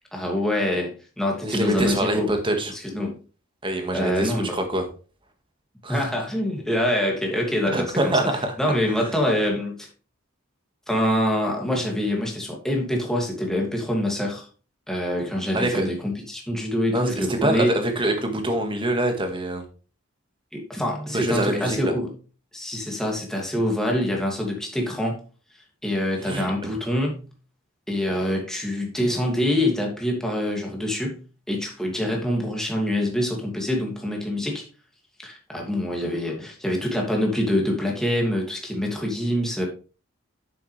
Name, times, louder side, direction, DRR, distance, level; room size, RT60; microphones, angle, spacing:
voice 1, 0.1-2.3 2.7-3.1 3.9-4.6 5.9-8.3 8.6-9.9 10.9-14.5 14.9-17.7 20.5-22.1 22.5-25.2 25.8-27.2 27.9-31.2 31.5-34.6 35.2-39.6, left 1 dB, ahead, -1 dB, 2.5 m, -25 dB
voice 2, 1.4-2.7 3.6-4.9 5.8-6.1 7.7-8.6 15.5-15.9 16.9-19.6 21.1-21.9 26.2-26.7, right 1 dB, 25° right, 5 dB, 1.8 m, -25 dB
9.7 x 7.4 x 3.4 m, 0.35 s
head